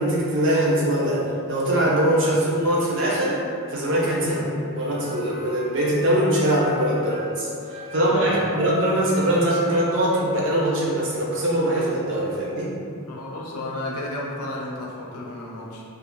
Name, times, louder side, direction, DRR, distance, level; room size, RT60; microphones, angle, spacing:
voice 1, 0.0-3.4 3.7-12.7, right 1 dB, 55° right, -5 dB, 0.6 m, -22 dB
Wind instrument woodwind instrument, 4.0-7.3 7.6-11.0, left 2 dB, 5° left, 0.5 m, -37 dB
Chink clink, 6.5-10.7, left 4 dB, 90° right, 0.8 m, -43 dB
voice 2, 8.0-8.5 13.1-15.8, left 1 dB, 90° left, -3 dB, 0.5 m, -33 dB
2.4 x 2.4 x 3.0 m, 2.4 s
head